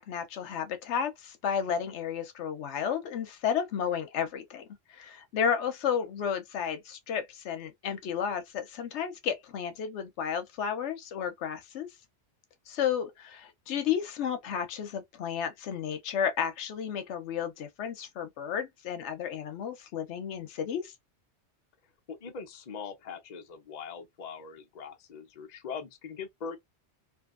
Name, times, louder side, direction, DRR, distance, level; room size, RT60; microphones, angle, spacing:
voice 1, 0.0-4.6 4.9-11.9 12.7-20.9, left 8 dB, 80° left, 0.9 m, -32 dB
voice 2, 22.1-26.6, left 6 dB, 45° left, 0.7 m, -41 dB
2.7 x 2.4 x 2.4 m
omnidirectional pair, 1.2 m